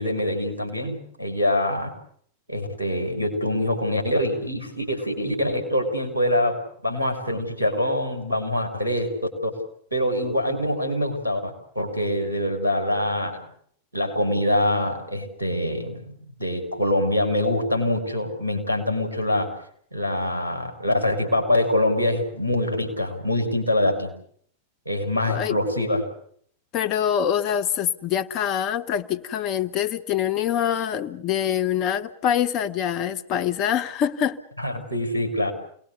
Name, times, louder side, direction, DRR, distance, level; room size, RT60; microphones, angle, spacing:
voice 1, 0.0-1.9 2.5-9.1 9.4-9.5 9.9-13.4 13.9-16.1 16.4-19.5 19.9-24.1 24.9-26.1 34.6-35.5, left 1 dB, 85° right, 2 dB, 6.1 m, -24 dB
voice 2, 26.7-34.4, left 9 dB, 40° left, 11 dB, 1.3 m, -25 dB
29.0 x 20.0 x 6.7 m, 0.63 s
figure-of-eight pair, 90°, 0 cm